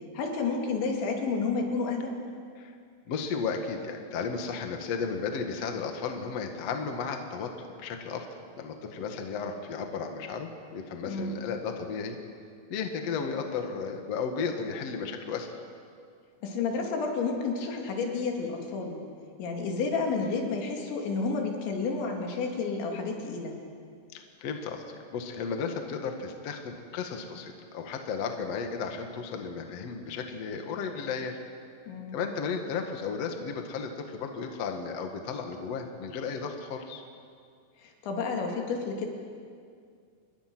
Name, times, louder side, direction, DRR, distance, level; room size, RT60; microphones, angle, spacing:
voice 1, 0.1-2.1 11.0-11.3 16.4-19.0 19.4-23.6 31.9-32.2 37.8-39.1, left 4 dB, 80° left, 2 dB, 4.8 m, -30 dB
voice 2, 3.1-8.3 8.6-12.2 12.7-15.5 24.1-31.4 32.1-37.0, left 5 dB, 50° left, 4 dB, 2.0 m, -34 dB
28.5 x 21.5 x 6.2 m, 2.2 s
omnidirectional pair, 5.2 m